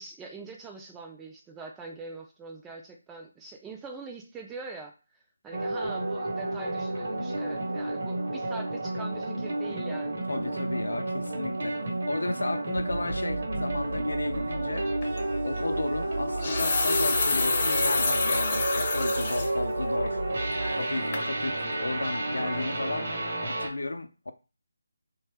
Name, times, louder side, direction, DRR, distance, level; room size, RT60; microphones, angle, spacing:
voice 1, 0.0-4.9 5.4-10.2, right 3 dB, 10° right, 0.3 m, -43 dB
sound 1, 5.5-23.7, right 2 dB, 50° right, 0.9 m, -31 dB
voice 2, 10.3-11.8 12.1-14.9 15.4-24.3, left 2 dB, 70° left, 0.5 m, -34 dB
sound 2, 12.8-21.8, right 2 dB, 75° right, 0.4 m, -37 dB
sound 3, 15.0-15.2 16.2-19.5 20.0-20.1 20.6-20.9 21.1-21.3, left 3 dB, 30° left, 0.6 m, -28 dB
2.8 x 2.1 x 3.3 m
figure-of-eight pair, 155°, 0 cm